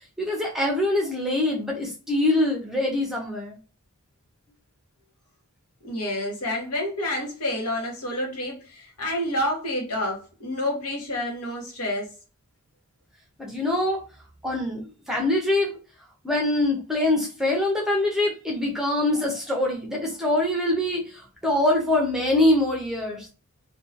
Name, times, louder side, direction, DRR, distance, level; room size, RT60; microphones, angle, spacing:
voice 1, 0.2-3.6 13.4-14.0 14.4-15.8 16.2-23.3, left 1 dB, ahead, 0.5 m, -24 dB
voice 2, 5.8-12.1, left 1 dB, 85° left, 1.0 m, -29 dB
2.7 x 2.2 x 2.4 m
head